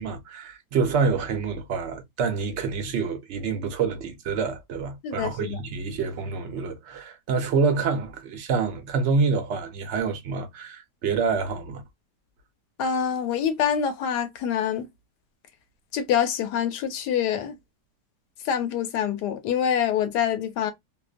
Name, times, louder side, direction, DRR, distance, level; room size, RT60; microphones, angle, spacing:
voice 1, 0.0-11.8, right 5 dB, 60° right, 0.7 m, -27 dB
voice 2, 5.0-5.6 12.8-14.9 15.9-17.5 18.4-20.7, left 8 dB, 75° left, 1.1 m, -25 dB
2.9 x 2.0 x 2.4 m
omnidirectional pair, 1.8 m